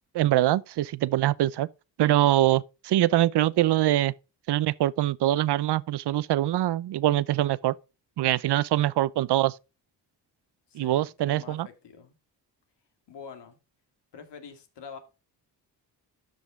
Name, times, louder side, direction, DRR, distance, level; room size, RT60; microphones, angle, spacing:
voice 1, 0.1-1.7 2.0-4.1 4.5-7.7 8.2-9.6 10.7-11.7, right 14 dB, 70° right, 0.6 m, -23 dB
voice 2, 10.7-12.2 13.1-13.6 14.1-15.0, left 6 dB, 75° left, 2.2 m, -46 dB
13.0 x 5.3 x 3.6 m
cardioid pair, 95°, 42 cm